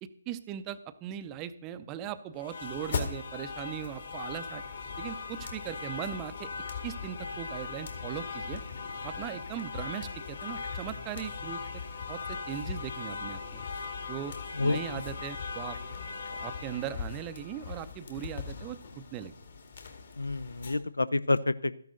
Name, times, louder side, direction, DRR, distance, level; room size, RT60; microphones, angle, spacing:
voice 1, 0.0-4.6 5.0-6.5 6.8-8.6 9.0-11.8 12.1-13.6 14.1-14.3 14.6-15.8 16.4-19.3, right 10 dB, 20° right, 13 dB, 0.6 m, -39 dB
sound 1, 2.4-20.7, left 5 dB, 50° left, 2.2 m, -39 dB
voice 2, 14.6-15.0 20.2-21.7, left 2 dB, 75° left, 16 dB, 0.6 m, -28 dB
13.5 x 10.5 x 3.9 m, 0.66 s
figure-of-eight pair, 145°, 0 cm